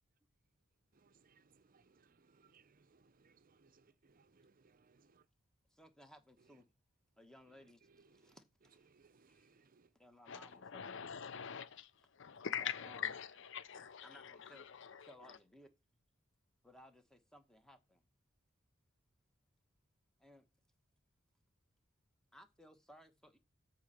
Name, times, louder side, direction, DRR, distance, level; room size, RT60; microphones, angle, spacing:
voice 1, 0.9-5.3 6.4-6.6 7.5-8.4 8.8-9.9, right 4 dB, 45° right, 0.6 m, -69 dB
voice 2, 5.7-6.7 7.2-8.4 8.7-8.9 9.3-9.5 9.9-11.2 12.6-13.1 13.6-14.7 15.0-15.7 16.6-18.0 20.2-20.5 22.3-23.4, equal, 5° left, 1.1 m, -61 dB
voice 3, 10.3-15.4, left 8 dB, 65° left, 0.6 m, -44 dB
8.1 x 4.3 x 6.6 m
head